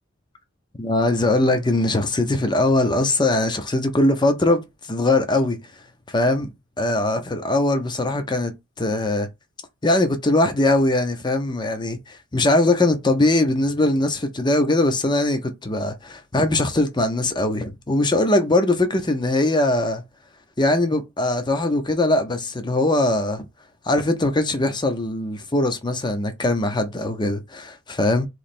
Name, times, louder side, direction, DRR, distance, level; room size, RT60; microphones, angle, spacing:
voice 1, 0.8-5.6 6.1-6.5 6.8-9.3 9.8-20.0 20.6-23.5 23.9-28.3, left 2 dB, 20° left, 0.7 m, -21 dB
3.2 x 3.1 x 4.2 m
head